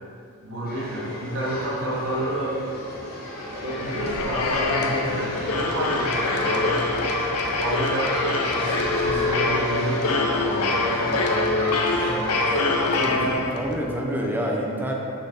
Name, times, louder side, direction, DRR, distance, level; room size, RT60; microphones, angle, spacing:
voice 1, 0.4-2.6 3.6-6.9 7.6-13.3, right 1 dB, 60° right, -5 dB, 1.3 m, -30 dB
sound 1, 0.6-13.0, left 1 dB, 45° left, 1.4 m, -33 dB
sound 2, 3.4-13.9, left 3 dB, 85° left, 0.7 m, -25 dB
voice 2, 12.9-14.9, equal, 10° right, -1 dB, 0.8 m, -27 dB
6.0 x 6.0 x 4.3 m, 2.5 s
head